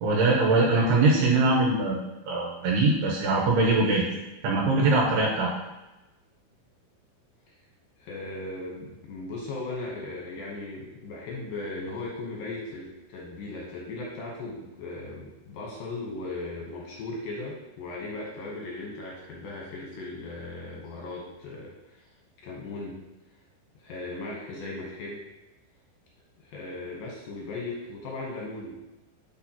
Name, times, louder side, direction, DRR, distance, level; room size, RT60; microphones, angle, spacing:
voice 1, 0.0-4.1 4.4-5.5, right 2 dB, 75° right, -2 dB, 2.7 m, -22 dB
voice 2, 8.0-22.1 22.4-23.0 23.8-25.2 26.4-28.7, left 2 dB, 70° left, -3 dB, 2.3 m, -37 dB
6.5 x 6.2 x 2.9 m, 1.0 s
omnidirectional pair, 5.1 m